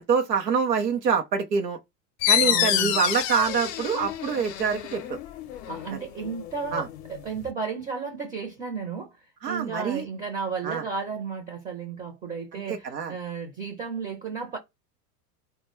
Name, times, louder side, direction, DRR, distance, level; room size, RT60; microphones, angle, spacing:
voice 1, 0.0-1.8 2.3-5.2 5.9-6.0 6.7-6.9 9.4-10.0 10.6-10.8 12.7-13.1, right 6 dB, 90° right, 0.7 m, -25 dB
sound 1, 2.2-7.5, left 11 dB, 45° left, 0.6 m, -28 dB
voice 2, 2.4-3.1 5.7-14.6, right 5 dB, 15° right, 0.6 m, -33 dB
2.2 x 2.1 x 3.0 m
hypercardioid pair, 95°, 48 cm